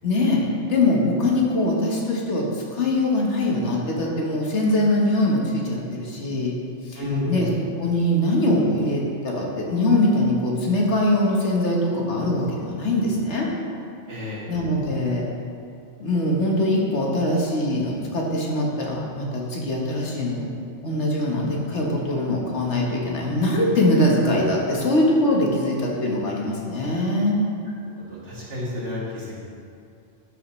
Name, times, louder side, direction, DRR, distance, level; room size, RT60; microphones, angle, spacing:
voice 1, 0.0-6.5 6.9-7.5 7.8-13.5 14.5-15.3 16.0-20.5 20.8-27.4, left 1 dB, 75° left, -2 dB, 1.6 m, -22 dB
voice 2, 7.0-7.6 14.1-14.5 28.1-29.4, left 2 dB, 55° right, -7 dB, 2.3 m, -30 dB
12.5 x 5.8 x 3.2 m, 2.4 s
omnidirectional pair, 1.2 m